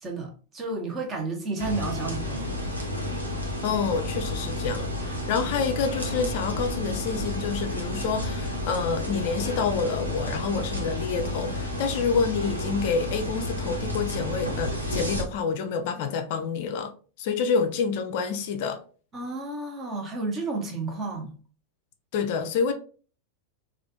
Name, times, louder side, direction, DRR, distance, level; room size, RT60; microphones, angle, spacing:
voice 1, 0.0-2.5 19.1-21.3, right 3 dB, 20° right, 0.8 m, -31 dB
sound 1, 1.6-15.2, left 1 dB, 85° right, 0.7 m, -31 dB
voice 2, 3.6-18.8 22.1-22.7, left 5 dB, 50° left, 0.3 m, -28 dB
3.2 x 2.3 x 2.6 m
figure-of-eight pair, 90°, 0 cm